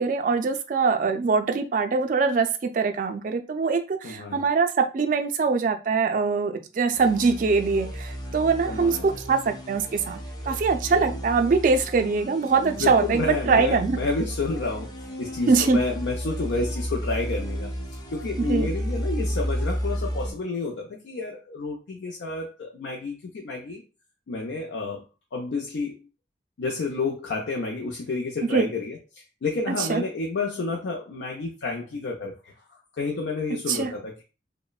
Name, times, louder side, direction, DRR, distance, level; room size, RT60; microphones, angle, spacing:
voice 1, 0.0-14.0 15.5-15.8 18.4-18.7 28.4-28.7 29.7-30.0 33.7-33.9, right 4 dB, 50° right, 7 dB, 0.3 m, -23 dB
voice 2, 4.0-4.4 8.7-9.2 12.8-17.7 18.1-23.8 24.3-25.0 25.3-26.0 26.6-29.0 29.4-34.2, left 3 dB, 85° left, 0 dB, 0.4 m, -30 dB
sound 1, 6.9-20.3, equal, 20° left, 0.4 m, -33 dB
3.0 x 2.1 x 2.3 m, 0.31 s
head